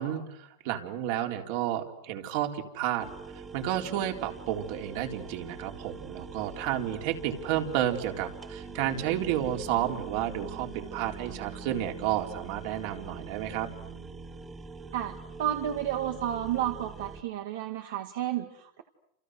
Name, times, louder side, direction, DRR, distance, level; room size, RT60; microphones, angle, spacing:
voice 1, 0.0-3.1 3.3-13.7, right 11 dB, 60° right, 3 dB, 4.1 m, -31 dB
sound 1, 3.0-17.2, right 5 dB, 20° right, 2.2 m, -43 dB
voice 2, 14.9-18.8, right 11 dB, 80° right, 4 dB, 2.2 m, -32 dB
30.0 x 29.0 x 6.6 m, 0.79 s
supercardioid pair, 140°, 0 cm